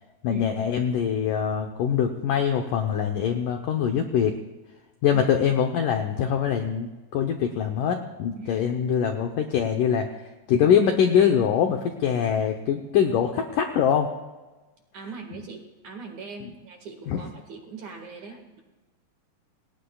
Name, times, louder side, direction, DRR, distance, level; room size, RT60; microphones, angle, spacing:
voice 1, 0.2-4.4 5.0-14.1 17.1-17.2, left 8 dB, 75° left, 4 dB, 1.9 m, -23 dB
voice 2, 14.9-18.6, right 4 dB, 55° right, 3 dB, 2.7 m, -40 dB
28.0 x 18.5 x 2.4 m, 1.2 s
omnidirectional pair, 4.8 m